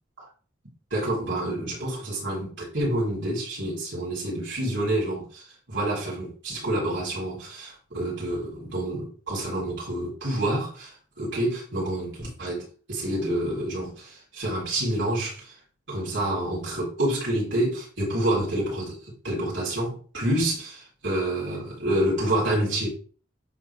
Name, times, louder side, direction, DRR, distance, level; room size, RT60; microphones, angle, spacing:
voice 1, 0.9-15.5 15.9-22.9, right 1 dB, 65° right, 4.2 m, -28 dB
9.8 x 4.0 x 3.6 m
head